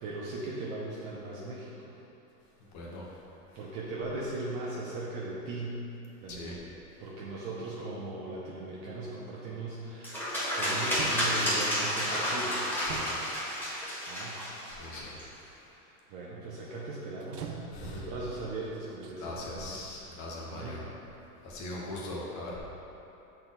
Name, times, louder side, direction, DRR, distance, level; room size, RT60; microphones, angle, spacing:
voice 1, 0.0-2.0 2.9-3.2 3.5-5.8 6.2-6.7 7.0-12.7 14.1-14.4 15.6-17.5 17.8-20.1 20.5-20.8, right 2 dB, 40° right, -6 dB, 0.9 m, -39 dB
sound 1, 9.4-9.6 10.4-10.5 10.8-11.6 12.9-13.5 14.4-14.5 17.2-18.1 18.9-19.1, right 8 dB, 85° right, 0.8 m, -42 dB
sound 2, 10.0-15.2, equal, 5° left, 1.4 m, -31 dB
voice 2, 14.8-15.1 17.7-18.1 19.2-20.8 21.4-22.6, left 2 dB, 35° left, -3 dB, 1.3 m, -40 dB
6.7 x 4.4 x 4.0 m, 2.9 s
supercardioid pair, 130°, 46 cm